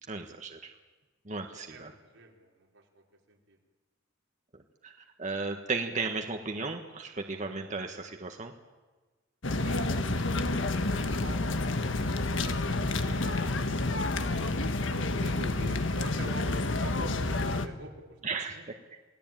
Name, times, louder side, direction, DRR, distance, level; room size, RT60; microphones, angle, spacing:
voice 1, 0.1-0.7 1.2-1.9 4.8-4.9 5.2-8.5 14.8-14.9 18.2-18.8, right 4 dB, 40° right, 4 dB, 1.6 m, -35 dB
voice 2, 1.7-3.6 9.6-14.1 15.2-18.7, right 2 dB, 90° right, 0 dB, 4.5 m, -47 dB
sound 1, 9.4-17.7, left 2 dB, 80° left, 1.5 m, -29 dB
28.5 x 18.5 x 9.2 m, 1.3 s
head